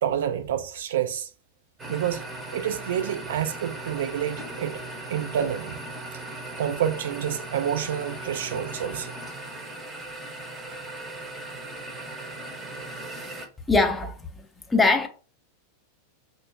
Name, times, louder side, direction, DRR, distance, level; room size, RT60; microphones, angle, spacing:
voice 1, 0.0-1.3 1.9-2.2 2.5-4.8 5.1-5.8 6.6-9.1, right 9 dB, 60° right, 0.3 m, -28 dB
sound 1, 1.8-13.5, right 2 dB, 15° right, 0.8 m, -38 dB
voice 2, 13.7-15.1, left 3 dB, 10° left, 0.6 m, -22 dB
5.7 x 2.2 x 2.3 m
figure-of-eight pair, 90°, 0 cm